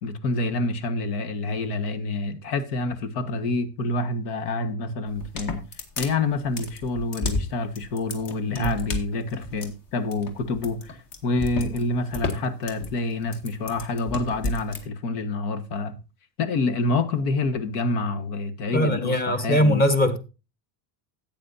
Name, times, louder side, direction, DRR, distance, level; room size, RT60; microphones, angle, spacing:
voice 1, 0.0-5.6 6.0-16.0 16.4-19.8, left 3 dB, 85° left, 1.5 m, -27 dB
sound 1, 5.1-14.8, left 2 dB, 45° left, 2.1 m, -32 dB
voice 2, 18.7-20.2, equal, 20° left, 1.3 m, -21 dB
13.5 x 8.8 x 2.7 m
supercardioid pair, 135°, 45 cm